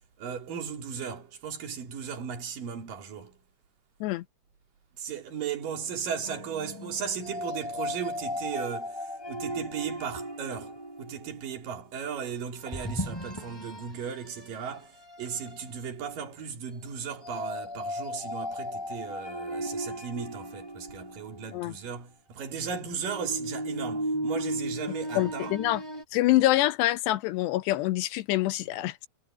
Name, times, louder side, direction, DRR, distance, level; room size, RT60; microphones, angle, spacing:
voice 1, 0.2-3.4 5.0-14.9 15.2-25.6, right 7 dB, 55° right, 4.2 m, -36 dB
sound 1, 6.2-11.5 12.7-13.9 14.4-14.5 15.1-15.6 17.2-21.7 22.9-26.0, equal, 5° left, 3.3 m, -36 dB
voice 2, 25.2-25.8 26.1-29.1, left 16 dB, 80° left, 3.1 m, -26 dB
omnidirectional pair, 4.9 m